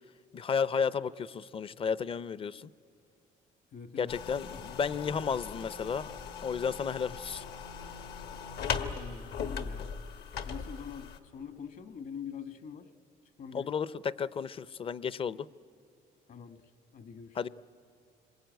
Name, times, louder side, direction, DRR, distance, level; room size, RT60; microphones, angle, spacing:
voice 1, 0.3-2.7 4.0-6.1 6.4-7.4 13.5-15.5 17.3-17.5, left 6 dB, 30° left, 18 dB, 0.5 m, -33 dB
voice 2, 3.7-4.2 4.5-4.8 8.7-9.9 10.4-12.9 13.4-13.7 16.3-17.4, left 7 dB, 55° left, 11 dB, 1.4 m, -45 dB
sound 1, 4.1-11.2, left 6 dB, 70° left, 1.5 m, -39 dB
26.0 x 22.0 x 9.2 m, 2.5 s
cardioid pair, 110°, 17 cm